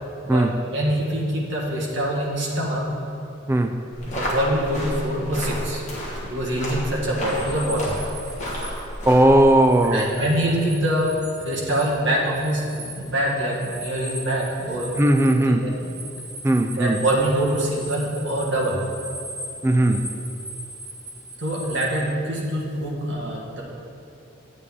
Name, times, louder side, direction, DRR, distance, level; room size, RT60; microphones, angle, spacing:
voice 1, 0.3-2.9 4.0-5.8 6.2-8.0 9.9-14.9 15.5-15.8 16.7-18.8 21.4-23.6, right 1 dB, 60° right, -4 dB, 1.5 m, -25 dB
sound 1, 3.9-9.5, equal, 35° left, 1.7 m, -31 dB
sound 2, 7.3-8.7 9.1-11.9 12.2-22.0, right 1 dB, 35° right, 1.4 m, -39 dB
voice 2, 9.0-10.1 15.0-15.7 16.4-17.0 19.6-20.0, right 1 dB, 10° right, 6 dB, 0.3 m, -17 dB
9.4 x 8.2 x 3.7 m, 2.7 s
head